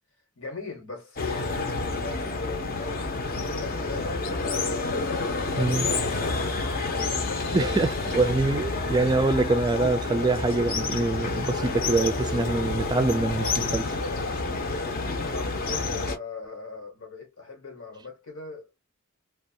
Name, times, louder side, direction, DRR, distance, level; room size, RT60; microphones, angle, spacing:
voice 1, 0.3-5.3 5.7-8.5 15.2-18.8, left 4 dB, 85° left, 1.3 m, -40 dB
sound 1, 1.2-16.2, left 3 dB, 45° left, 0.7 m, -29 dB
voice 2, 7.5-14.0, right 3 dB, 20° right, 0.3 m, -25 dB
2.5 x 2.3 x 2.6 m
head